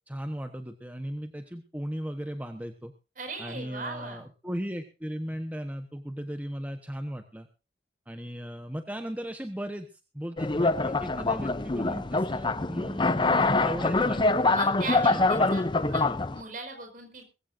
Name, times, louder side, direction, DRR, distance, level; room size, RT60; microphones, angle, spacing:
voice 1, 0.1-2.9 3.4-7.5 8.1-14.4 14.8-16.2, equal, 10° right, 6 dB, 1.1 m, -37 dB
voice 2, 3.2-4.3 14.5-15.6 15.9-17.2, right 3 dB, 50° right, 5 dB, 5.4 m, -38 dB
sound 1, 10.4-16.4, left 3 dB, 25° left, 0.6 m, -25 dB
21.0 x 15.0 x 2.7 m, 0.31 s
head